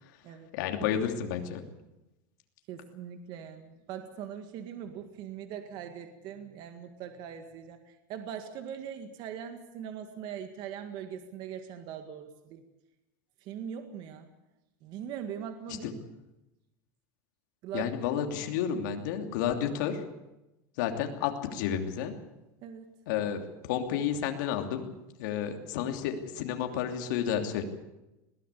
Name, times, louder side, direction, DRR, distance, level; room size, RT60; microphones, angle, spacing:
voice 1, 0.5-1.6 15.7-15.9 17.7-20.0 20.8-22.1 23.1-24.9 25.2-27.6, left 9 dB, 70° left, 4 dB, 3.0 m, -31 dB
voice 2, 2.7-7.8 8.1-12.6 13.5-14.3 14.8-16.0 17.6-17.9 22.6-22.9, right 8 dB, 45° right, 7 dB, 1.9 m, -41 dB
21.0 x 16.0 x 8.4 m, 0.96 s
supercardioid pair, 160°, 10 cm